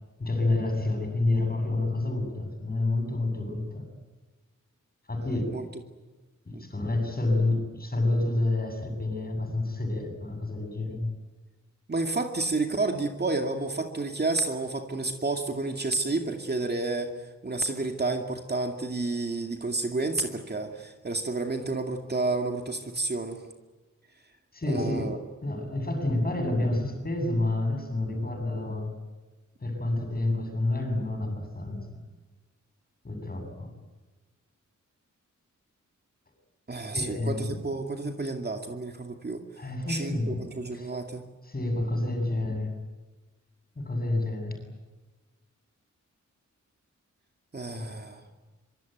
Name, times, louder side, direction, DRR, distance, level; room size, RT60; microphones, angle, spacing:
voice 1, 0.2-3.8 5.1-5.6 6.4-11.1 24.5-25.1 25.4-28.9 29.6-32.0 33.0-33.7 36.9-37.6 39.6-40.9 41.4-42.7 43.7-44.6 47.8-48.0, left 2 dB, 30° left, 5 dB, 8.0 m, -29 dB
voice 2, 11.9-17.1 17.4-23.4 24.7-25.2 36.7-39.4 39.9-41.2 47.5-48.2, right 3 dB, 35° right, 4 dB, 2.4 m, -30 dB
25.5 x 24.5 x 9.3 m, 1.2 s
wide cardioid pair, 150°, 30 cm